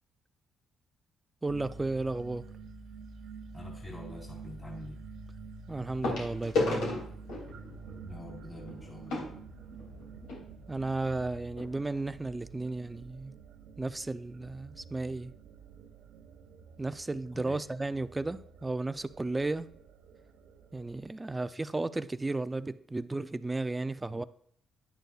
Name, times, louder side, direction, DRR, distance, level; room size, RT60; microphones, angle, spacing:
voice 1, 1.4-2.5 5.7-7.0 10.7-13.3 13.8-15.3 16.8-19.7 20.7-24.2, right 2 dB, 15° right, 0.5 m, -34 dB
sound 1, 1.5-21.1, right 4 dB, 85° right, 0.8 m, -49 dB
sound 2, 2.4-2.7 4.4-4.5 6.0-10.4 11.2-11.3 11.5-11.7 12.2-12.3, left 2 dB, 90° left, 2.7 m, -35 dB
voice 2, 3.5-5.0 8.0-9.4 17.3-17.6, left 1 dB, 25° left, 3.7 m, -45 dB
10.5 x 9.2 x 2.4 m
cardioid pair, 90°, 0 cm